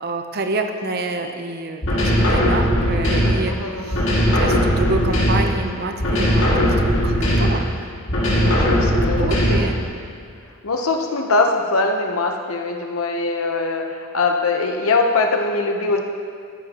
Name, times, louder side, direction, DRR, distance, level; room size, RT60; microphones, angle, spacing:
voice 1, 0.0-4.1 4.3-6.5 7.0-7.7 9.2-9.8, right 2 dB, 50° right, 5 dB, 0.8 m, -27 dB
sound 1, 1.8-3.5 3.9-5.7 6.0-7.7 8.1-9.8, equal, 65° left, 2.3 m, -18 dB
voice 2, 3.5-4.0 8.4-9.7 10.6-16.0, left 3 dB, 85° left, 3 dB, 1.0 m, -22 dB
13.0 x 11.0 x 3.0 m, 2.3 s
head